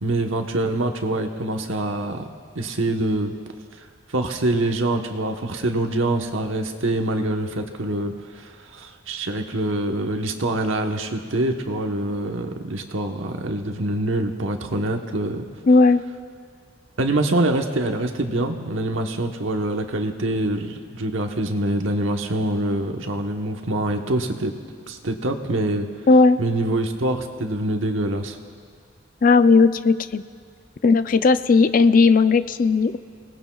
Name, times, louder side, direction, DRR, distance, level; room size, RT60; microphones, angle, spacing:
voice 1, 0.0-2.3 2.5-3.3 4.1-15.5 17.0-24.5 24.9-25.9 26.4-28.4, right 1 dB, 85° right, 4 dB, 1.1 m, -25 dB
voice 2, 15.7-16.0 26.1-26.4 29.2-30.2 30.8-33.0, left 4 dB, 45° left, 13 dB, 0.4 m, -16 dB
29.0 x 19.0 x 2.4 m, 2.1 s
head